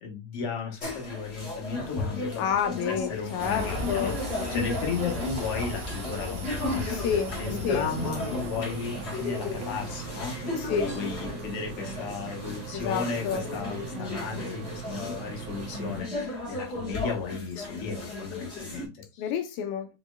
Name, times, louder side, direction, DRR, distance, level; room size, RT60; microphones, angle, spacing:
voice 1, 0.0-2.4 2.9-6.9 7.3-10.3 10.7-19.3, left 5 dB, 60° left, 1.8 m, -35 dB
sound 1, 0.8-18.8, left 3 dB, 30° left, 1.2 m, -35 dB
voice 2, 2.4-4.1 6.9-7.3 7.6-7.9 10.6-10.9 12.7-13.4 19.2-20.0, left 7 dB, 80° left, 1.7 m, -29 dB
sound 2, 3.4-10.3, left 1 dB, 60° right, 1.2 m, -37 dB
sound 3, 7.8-16.0, right 7 dB, 80° right, 2.1 m, -40 dB
6.2 x 2.8 x 2.3 m
omnidirectional pair, 3.6 m